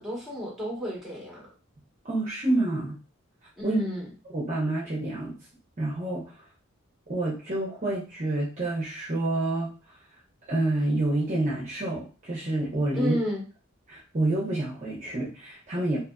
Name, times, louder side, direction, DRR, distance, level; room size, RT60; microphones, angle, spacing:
voice 1, 0.0-1.5 3.6-4.1 12.9-13.4, equal, ahead, -4 dB, 1.1 m, -31 dB
voice 2, 2.0-3.0 3.6-3.8 4.3-5.3 5.8-6.3 7.1-9.7 10.5-13.1 13.9-16.0, right 2 dB, 35° right, -5 dB, 0.7 m, -28 dB
2.9 x 2.4 x 2.2 m, 0.34 s
head